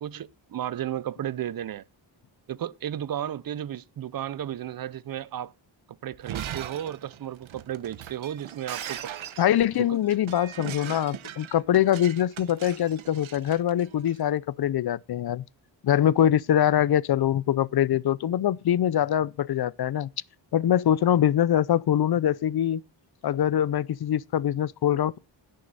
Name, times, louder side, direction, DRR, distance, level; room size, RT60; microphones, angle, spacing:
voice 1, 0.0-1.8 2.5-5.5 5.9-9.1 9.8-10.0, right 11 dB, 50° right, 0.6 m, -34 dB
Shatter, 6.1-14.2, right 10 dB, 80° right, 1.0 m, -40 dB
voice 2, 9.4-15.4 15.8-20.1 20.5-22.8 23.2-25.2, left 10 dB, 55° left, 0.5 m, -23 dB
16.5 x 6.5 x 4.0 m
wide cardioid pair, 150°, 47 cm